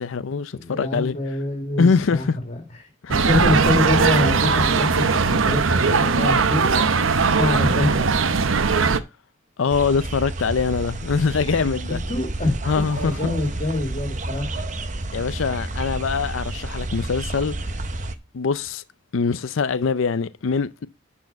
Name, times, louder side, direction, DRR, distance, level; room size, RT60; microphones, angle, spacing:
voice 1, 0.0-1.2 1.8-2.4 3.0-3.2 9.6-12.0 12.6-13.3 15.1-17.7 18.3-18.8 19.1-20.9, left 5 dB, 80° left, 0.5 m, -23 dB
voice 2, 0.5-2.6 3.1-6.7 7.4-8.0 11.9-14.5, left 2 dB, 35° left, 2.1 m, -25 dB
sound 1, 3.1-9.0, right 4 dB, 85° right, 0.8 m, -19 dB
sound 2, 9.7-18.2, right 2 dB, 40° right, 0.8 m, -30 dB
10.5 x 4.4 x 5.4 m
head